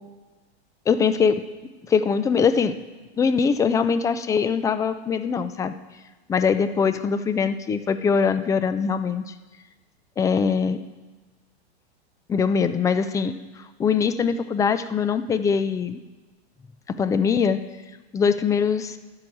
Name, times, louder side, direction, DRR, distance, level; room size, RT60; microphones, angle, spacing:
voice 1, 0.9-1.4 1.9-2.7 3.2-5.7 6.3-9.2 10.2-10.8 12.3-13.3 13.8-16.0 17.0-17.6 18.1-19.0, left 6 dB, 10° left, 11 dB, 0.3 m, -22 dB
12.5 x 4.8 x 8.5 m, 1.2 s
hypercardioid pair, 115°, 33 cm